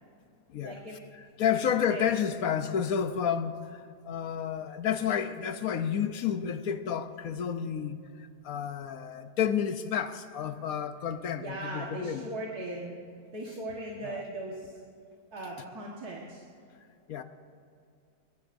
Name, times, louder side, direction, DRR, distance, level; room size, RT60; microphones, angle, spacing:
voice 1, 0.6-1.0 1.5-1.6 1.9-2.1 11.4-13.0 13.3-14.8 15.3-16.4, right 2 dB, 65° right, 2.1 m, -38 dB
voice 2, 1.1-8.0 8.4-12.3 14.0-14.2 17.1-17.2, left 8 dB, 65° left, 1.1 m, -30 dB
21.5 x 21.0 x 2.6 m
omnidirectional pair, 1.7 m